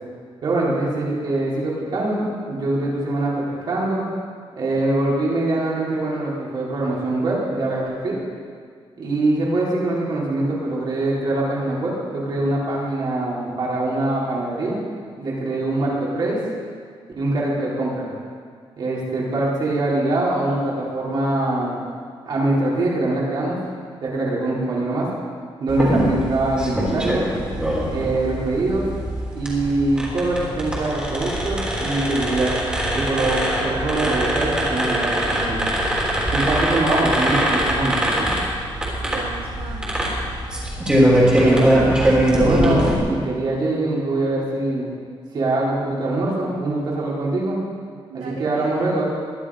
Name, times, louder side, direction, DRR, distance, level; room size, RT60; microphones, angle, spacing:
voice 1, 0.4-4.0 4.5-8.2 9.0-14.8 15.2-16.4 17.2-18.1 18.8-21.8 22.2-23.6 24.0-25.1 25.6-27.3 27.9-28.8 29.3-32.5 32.9-35.6 36.3-38.3 41.3-42.0 42.3-44.9 45.3-47.6 48.1-49.0, right 2 dB, 50° right, -5 dB, 4.3 m, -23 dB
sound 1, 25.7-42.9, equal, 10° right, 3.5 m, -22 dB
voice 2, 39.0-40.2 48.1-49.0, right 6 dB, 75° right, 2 dB, 1.1 m, -38 dB
21.0 x 12.0 x 5.1 m, 2.1 s
wide cardioid pair, 175°, 10 cm